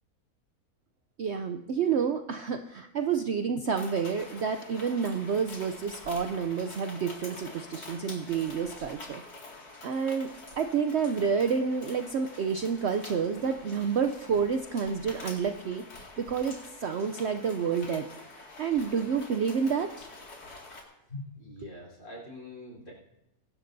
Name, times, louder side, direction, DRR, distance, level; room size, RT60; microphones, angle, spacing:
voice 1, 1.2-9.2 9.8-10.3 10.6-18.1 18.6-20.1 21.6-21.7, right 6 dB, 60° right, 7 dB, 0.7 m, -29 dB
sound 1, 3.8-20.8, left 2 dB, 90° left, 2.7 m, -47 dB
voice 2, 21.1-22.9, left 2 dB, 50° left, -3 dB, 4.3 m, -43 dB
22.5 x 12.0 x 2.6 m, 0.88 s
omnidirectional pair, 1.6 m